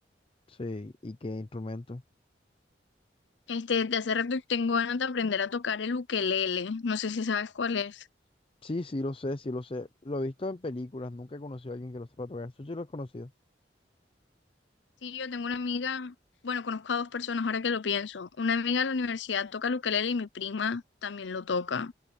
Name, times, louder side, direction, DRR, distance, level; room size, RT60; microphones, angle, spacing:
voice 1, 0.5-2.0 8.6-13.3, left 2 dB, 30° left, 0.6 m, -36 dB
voice 2, 3.5-8.0 15.0-16.1 16.4-21.9, left 5 dB, 80° left, 0.6 m, -30 dB
head